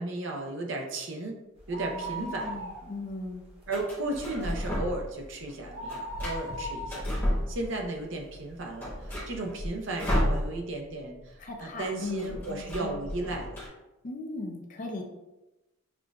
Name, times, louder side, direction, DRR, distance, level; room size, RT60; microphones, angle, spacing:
voice 1, 0.0-1.3 1.7-2.6 3.7-13.6, right 2 dB, 60° right, 1 dB, 0.6 m, -35 dB
sound 1, 1.6-3.2 3.5-3.6 4.1-8.5 9.0-9.1 9.9-10.0 10.2-10.3, right 1 dB, 25° right, 0.8 m, -39 dB
sound 2, 1.7-2.5 3.7-5.2 5.5-8.0 8.3-8.4 8.7-10.9 11.1-11.3 11.6-13.7, equal, 10° left, 0.9 m, -33 dB
voice 2, 1.9-3.4 11.4-13.0 14.0-15.0, left 2 dB, 40° left, 3 dB, 0.5 m, -38 dB
5.8 x 2.4 x 2.3 m, 0.99 s
head